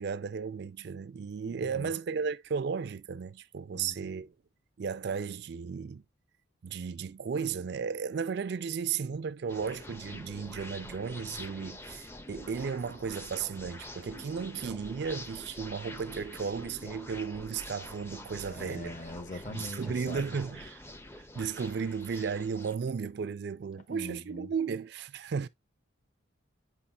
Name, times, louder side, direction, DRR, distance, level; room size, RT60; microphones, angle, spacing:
voice 1, 0.0-4.3 4.8-6.0 6.6-19.0 19.3-20.8 21.4-25.5, right 6 dB, 55° right, 0.4 m, -34 dB
voice 2, 1.4-1.9 3.7-4.0 18.4-20.3 23.9-24.5, left 1 dB, 40° left, 1.0 m, -43 dB
sound 1, 9.5-22.7, left 1 dB, 10° left, 0.5 m, -46 dB
8.6 x 5.6 x 2.3 m
head